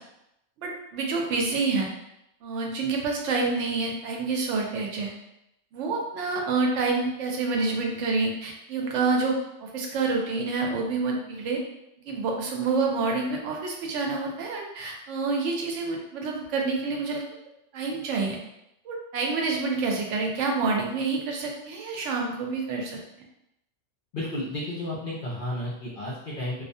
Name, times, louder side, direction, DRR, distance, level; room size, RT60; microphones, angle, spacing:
voice 1, 0.6-1.9 2.4-5.1 5.7-11.6 12.1-17.2 17.7-18.4 18.9-23.0, right 4 dB, 75° right, 0 dB, 0.9 m, -28 dB
voice 2, 24.1-26.6, left 1 dB, 55° left, -6 dB, 0.6 m, -32 dB
2.3 x 2.1 x 2.6 m, 0.83 s
omnidirectional pair, 1.3 m